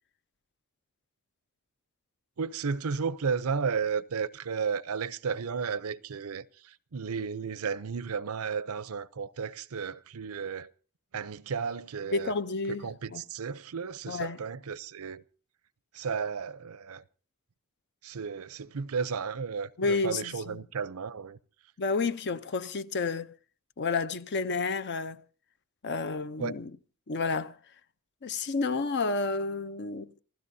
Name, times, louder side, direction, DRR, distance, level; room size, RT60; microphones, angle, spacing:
voice 1, 2.4-10.7 11.1-12.3 12.7-15.2 15.9-17.0 18.0-21.4 26.4-26.6, right 5 dB, 80° right, 0.6 m, -33 dB
voice 2, 12.0-13.2 14.1-14.4 19.8-20.6 21.8-23.3 23.8-25.2 25.8-26.7 27.1-27.6 28.2-30.1, left 4 dB, 55° left, 0.7 m, -30 dB
29.0 x 15.5 x 2.7 m
head